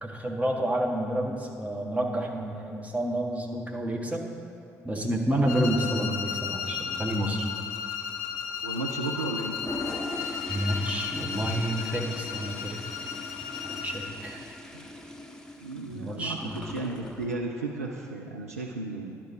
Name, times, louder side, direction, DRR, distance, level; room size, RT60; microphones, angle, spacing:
voice 1, 0.0-4.3 4.8-7.4 10.5-12.8 13.6-14.5 15.9-16.5, right 1 dB, 15° right, 1 dB, 1.2 m, -29 dB
sound 1, 5.4-14.2, left 7 dB, 65° left, 0.5 m, -35 dB
voice 2, 8.6-9.6 14.7-14.9 15.6-19.2, right 3 dB, 85° right, 0 dB, 0.3 m, -34 dB
Toilet flush, 9.4-17.3, left 1 dB, 5° left, 0.8 m, -40 dB
10.5 x 5.9 x 4.5 m, 2.7 s
figure-of-eight pair, 45°, 8 cm